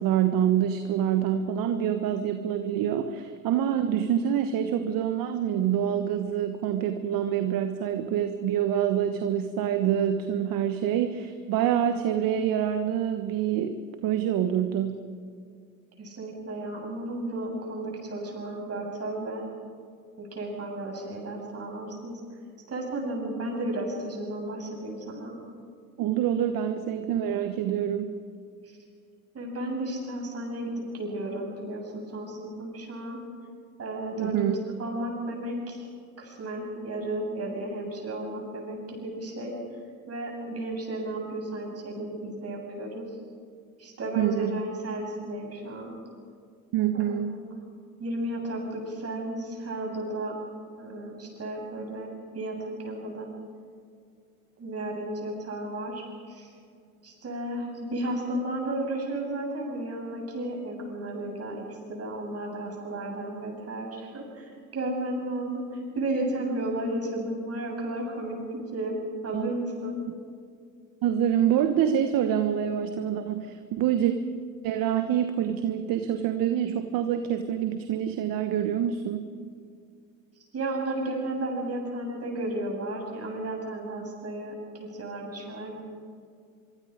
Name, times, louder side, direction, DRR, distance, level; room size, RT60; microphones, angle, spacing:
voice 1, 0.0-15.0 26.0-28.1 34.2-34.5 44.2-44.6 46.7-47.3 69.3-69.5 71.0-74.1 74.6-79.3, right 9 dB, 55° right, 8 dB, 1.4 m, -26 dB
voice 2, 16.0-19.4 20.2-22.1 22.7-25.3 28.7-28.8 29.3-33.2 33.8-35.9 36.2-39.6 40.1-43.0 43.8-45.9 46.9-47.7 48.0-50.3 50.8-52.1 52.3-53.3 54.6-56.5 57.0-69.0 69.2-70.0 80.5-85.8, right 1 dB, 35° right, 1 dB, 7.9 m, -33 dB
24.5 x 24.5 x 5.2 m, 2.2 s
hypercardioid pair, 70°, 41 cm